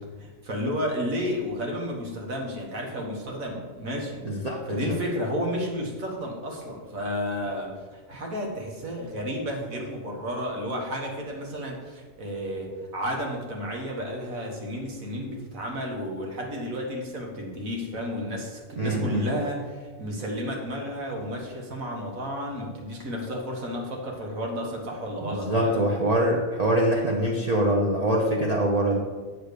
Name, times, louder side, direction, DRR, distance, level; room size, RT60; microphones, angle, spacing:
voice 1, 0.2-4.3 4.7-25.8, equal, 80° right, 0 dB, 1.9 m, -32 dB
voice 2, 4.2-5.0 18.8-19.3 25.3-29.0, right 1 dB, 35° right, -2 dB, 0.8 m, -24 dB
7.6 x 4.4 x 6.7 m, 1.4 s
omnidirectional pair, 1.4 m